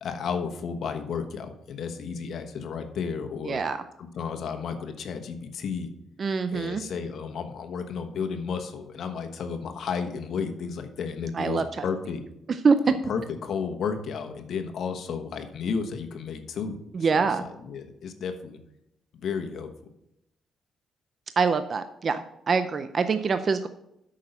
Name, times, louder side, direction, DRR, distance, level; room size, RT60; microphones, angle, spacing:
voice 1, 0.0-3.6 4.0-5.9 6.5-12.2 13.0-16.8 17.1-18.6 19.1-19.7, left 6 dB, 65° left, 6 dB, 1.2 m, -32 dB
voice 2, 3.5-3.8 6.2-6.8 11.3-11.6 12.6-12.8 16.9-17.4 21.4-23.7, right 5 dB, 45° right, 10 dB, 0.5 m, -24 dB
8.6 x 6.4 x 5.5 m, 0.82 s
cardioid pair, 90°, 0 cm